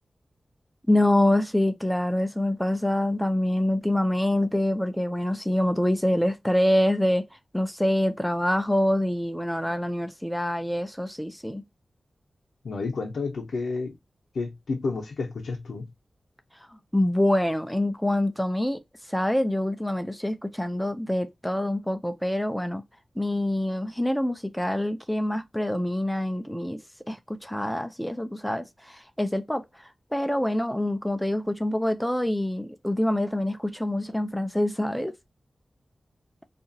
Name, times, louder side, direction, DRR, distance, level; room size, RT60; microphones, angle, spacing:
voice 1, 0.9-7.2 7.5-11.6 16.7-18.8 19.1-22.8 23.2-26.8 27.1-35.2, left 1 dB, 5° left, 0.4 m, -25 dB
voice 2, 12.6-14.0 14.3-15.9, left 4 dB, 85° left, 0.7 m, -30 dB
2.8 x 2.4 x 2.6 m
wide cardioid pair, 90°, 0 cm